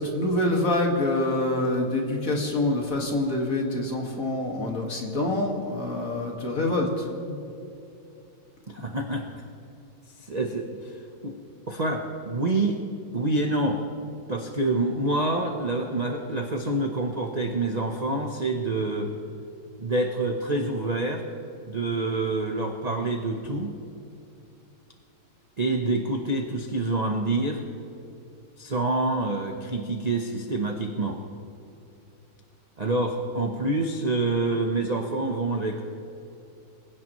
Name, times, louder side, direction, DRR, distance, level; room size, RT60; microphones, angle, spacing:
voice 1, 0.0-7.4, left 1 dB, 45° left, 0 dB, 2.3 m, -26 dB
voice 2, 8.7-9.2 10.2-10.9 11.2-11.3 11.7-12.8 13.1-13.8 14.3-19.1 19.8-21.2 21.6-23.7 25.6-27.6 28.6-31.2 32.8-35.8, right 2 dB, 35° right, 2 dB, 0.6 m, -27 dB
25.0 x 16.5 x 3.1 m, 2.7 s
omnidirectional pair, 2.0 m